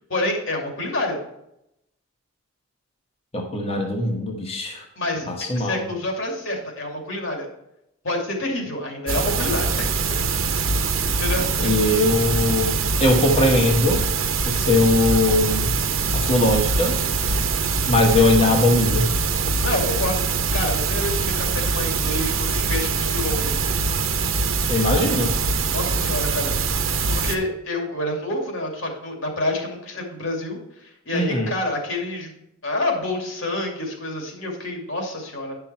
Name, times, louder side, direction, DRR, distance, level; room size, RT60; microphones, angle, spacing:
voice 1, 0.1-1.2 5.0-5.3 5.6-7.5 8.0-9.9 11.1-11.7 19.6-23.6 25.7-26.5 27.1-32.3 32.6-35.6, left 1 dB, 75° left, 1 dB, 2.5 m, -28 dB
voice 2, 3.3-4.9 5.3-5.8 11.6-14.0 14.5-15.7 16.1-17.0 17.9-19.1 24.7-25.3 31.1-31.5, left 2 dB, 30° left, 1 dB, 1.2 m, -20 dB
sound 1, 9.1-27.4, right 4 dB, 90° right, 1.0 m, -23 dB
9.9 x 5.7 x 4.3 m, 0.81 s
head